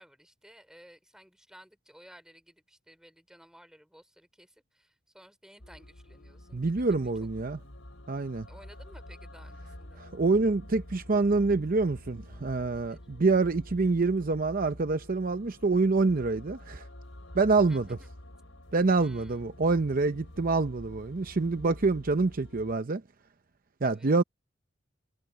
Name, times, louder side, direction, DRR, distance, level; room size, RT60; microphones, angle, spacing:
voice 1, 0.0-7.3 8.5-10.0 12.7-13.0 17.6-18.1 19.0-19.5 23.8-24.1, equal, 5° right, 3.8 m, -56 dB
sound 1, 5.6-22.7, left 1 dB, 90° left, 4.0 m, -48 dB
voice 2, 6.5-7.6 8.1-8.5 10.0-16.9 17.3-17.8 18.7-23.0 23.8-24.2, right 3 dB, 45° right, 0.7 m, -26 dB
head